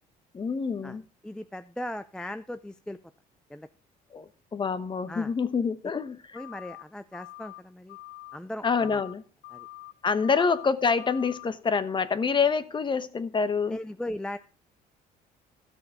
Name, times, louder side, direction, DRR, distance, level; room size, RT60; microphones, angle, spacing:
voice 1, 0.3-1.0 4.1-6.4 8.6-9.2 10.0-13.8, left 5 dB, 30° left, 1.0 m, -27 dB
voice 2, 1.2-3.0 3.5-3.7 5.1-5.3 6.3-8.0 8.3-9.0 9.5-9.7 13.7-14.4, left 1 dB, 5° left, 0.5 m, -38 dB
sound 1, 6.4-6.8 7.1-7.6 7.9-8.4 8.7-9.1 9.4-9.9 10.2-10.7 11.0-11.5, left 17 dB, 70° left, 0.7 m, -45 dB
13.5 x 6.2 x 5.8 m
cardioid pair, 110°, 17 cm